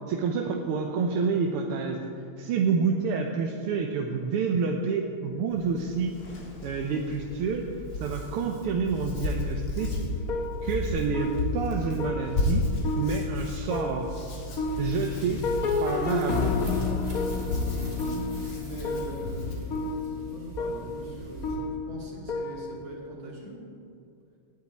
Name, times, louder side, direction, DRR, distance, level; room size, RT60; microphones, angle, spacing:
voice 1, 0.1-2.1 2.4-6.1 6.6-7.7 8.0-10.0 10.6-12.7 13.0-14.1 14.8-15.5 15.8-16.6, right 5 dB, 85° right, 2 dB, 1.7 m, -28 dB
Hands, 5.5-19.5, left 2 dB, 80° left, 2.7 m, -34 dB
sound 1, 9.8-23.0, left 3 dB, 50° left, 1.2 m, -31 dB
sound 2, 14.1-21.5, right 1 dB, 25° right, 3.1 m, -46 dB
voice 2, 18.1-23.6, right 1 dB, 65° right, -2 dB, 3.3 m, -42 dB
18.0 x 9.5 x 4.2 m, 2.5 s
omnidirectional pair, 2.4 m